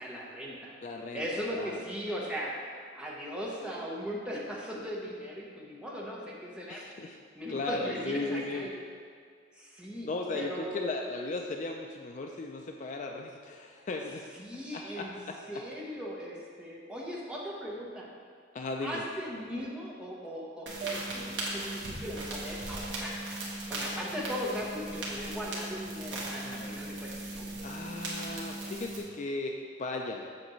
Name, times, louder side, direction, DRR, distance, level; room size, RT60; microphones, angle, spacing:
voice 1, 0.0-0.7 1.1-2.6 2.9-6.8 7.3-8.8 9.5-10.9 14.3-15.1 15.5-18.1 18.8-23.2 23.7-27.1 27.4-27.5, equal, 5° right, -4 dB, 0.9 m, -38 dB
voice 2, 0.8-1.3 1.5-1.8 6.7-7.2 7.5-8.7 10.0-14.2 14.7-15.4 18.5-19.0 26.4-26.8 27.6-30.3, left 2 dB, 40° left, 2 dB, 0.3 m, -36 dB
sound 1, 20.7-29.0, right 2 dB, 65° right, 1.4 m, -38 dB
sound 2, 20.8-23.8, right 7 dB, 45° right, 0.3 m, -46 dB
7.7 x 6.0 x 3.1 m, 2.1 s
head